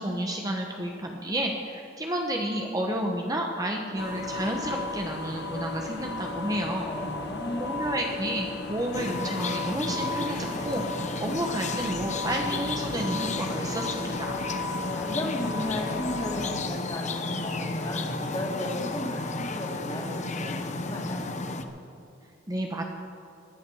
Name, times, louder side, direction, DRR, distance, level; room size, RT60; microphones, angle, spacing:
voice 1, 0.0-6.9 7.6-10.8 11.2-14.4 22.5-22.8, right 1 dB, 20° right, 1 dB, 1.1 m, -31 dB
sound 1, 4.0-16.5, left 2 dB, 60° left, 1.6 m, -35 dB
voice 2, 6.8-7.9 14.9-21.3, left 1 dB, 20° left, -2 dB, 2.9 m, -34 dB
sound 2, 8.9-21.6, left 3 dB, 40° left, 1.0 m, -33 dB
sound 3, 10.3-10.9, right 2 dB, 50° right, 2.3 m, -44 dB
18.5 x 11.0 x 6.4 m, 2.6 s
head